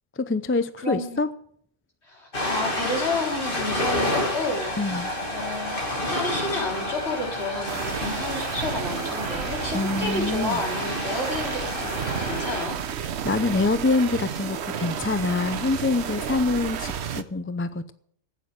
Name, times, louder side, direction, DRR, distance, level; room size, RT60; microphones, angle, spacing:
voice 1, 0.3-1.3 4.8-5.1 9.7-10.6 13.2-17.9, left 3 dB, 20° left, 12 dB, 0.3 m, -25 dB
voice 2, 0.8-1.2 2.0-12.8, left 2 dB, 60° left, -1 dB, 4.2 m, -31 dB
Ocean, 2.3-12.6, left 1 dB, 45° left, 2.8 m, -30 dB
sound 1, 7.7-17.2, right 8 dB, 65° right, 1.0 m, -32 dB
12.5 x 9.1 x 7.7 m, 0.63 s
omnidirectional pair, 1.3 m